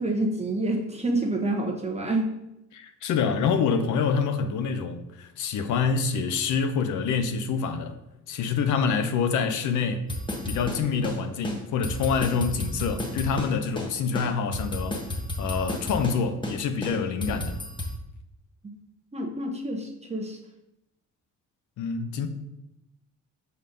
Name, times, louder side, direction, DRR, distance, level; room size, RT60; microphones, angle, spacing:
voice 1, 0.0-2.3 19.1-20.4, right 2 dB, 20° right, 1.0 m, -28 dB
voice 2, 2.7-8.0 8.3-10.1 10.5-15.0 15.4-17.6 21.8-22.3, left 5 dB, 75° left, 0.8 m, -26 dB
sound 1, 10.1-11.2 11.4-11.6 11.8-13.5 13.8-13.9 14.2-16.2 16.4-16.6 16.8-17.9, left 1 dB, 15° left, 1.3 m, -31 dB
5.5 x 4.1 x 5.2 m
cardioid pair, 90°, 30 cm